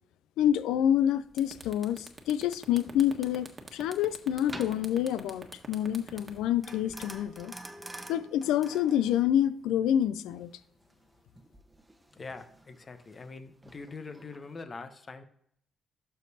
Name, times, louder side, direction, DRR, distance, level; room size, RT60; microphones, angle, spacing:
voice 1, 0.4-7.5 8.1-10.5, left 10 dB, 75° left, 0.4 m, -27 dB
sound 1, 0.9-1.0 1.3-7.4, right 3 dB, 30° right, 1.4 m, -46 dB
sound 2, 2.7-14.6, right 1 dB, 15° right, 1.1 m, -49 dB
voice 2, 12.1-15.2, left 4 dB, 40° left, 0.9 m, -43 dB
12.0 x 4.6 x 2.8 m
hypercardioid pair, 45°, 0 cm